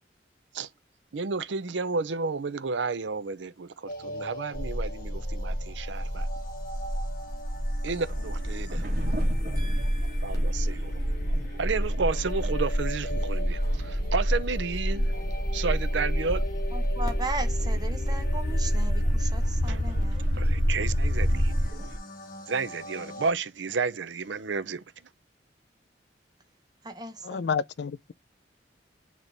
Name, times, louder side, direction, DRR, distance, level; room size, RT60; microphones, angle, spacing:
voice 1, 1.1-6.3 7.8-8.9 10.2-10.9 11.6-15.0 15.5-16.4 19.7-19.8 20.3-21.5 22.5-24.8, right 4 dB, 80° right, 0.6 m, -31 dB
sound 1, 3.9-23.3, equal, 50° left, 0.9 m, -43 dB
sound 2, 4.5-21.7, equal, 20° left, 1.6 m, -28 dB
sound 3, 7.9-22.0, equal, 55° right, 1.5 m, -35 dB
voice 2, 9.6-10.7 16.7-20.4 26.8-27.5, right 2 dB, 20° right, 1.0 m, -38 dB
voice 3, 27.2-28.1, left 6 dB, 65° left, 0.4 m, -30 dB
8.8 x 3.1 x 3.9 m
head